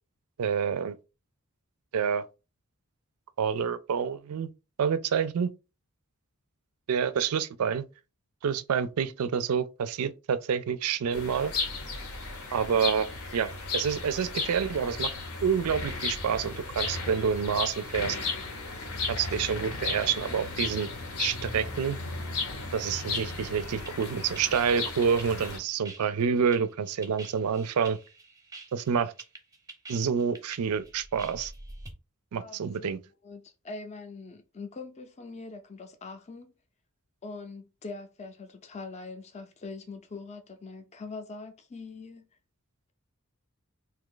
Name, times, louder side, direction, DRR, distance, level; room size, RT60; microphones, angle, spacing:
voice 1, 0.4-1.0 1.9-2.3 3.4-4.5 4.8-5.5 6.9-7.8 8.4-11.5 12.5-15.1 15.4-18.2 19.1-20.9 21.2-22.0 22.7-28.0 28.7-29.1 29.9-31.5 32.3-33.0, right 7 dB, 85° right, 0.4 m, -28 dB
sound 1, 11.1-25.6, left 4 dB, 75° left, 0.8 m, -35 dB
sound 2, 23.3-31.9, right 3 dB, 15° right, 0.6 m, -47 dB
voice 2, 32.4-33.0 33.2-36.5 37.2-42.3, left 3 dB, 30° left, 0.4 m, -42 dB
2.8 x 2.4 x 3.7 m
head